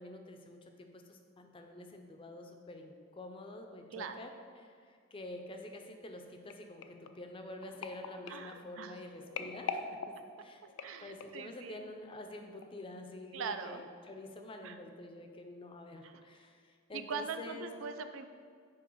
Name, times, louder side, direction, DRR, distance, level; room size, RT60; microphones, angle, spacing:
voice 1, 0.0-4.3 4.6-10.0 10.4-10.6 11.0-17.7, left 2 dB, 25° left, 4 dB, 0.5 m, -48 dB
voice 2, 3.9-4.3 8.3-9.0 10.8-11.8 13.3-13.8 14.6-14.8 16.0-16.2 16.9-18.3, right 5 dB, 65° right, 9 dB, 0.4 m, -42 dB
sound 1, 6.5-11.5 12.1-12.3 12.6-12.7, left 5 dB, 80° left, 0.4 m, -44 dB
6.0 x 4.6 x 4.5 m, 2.1 s
head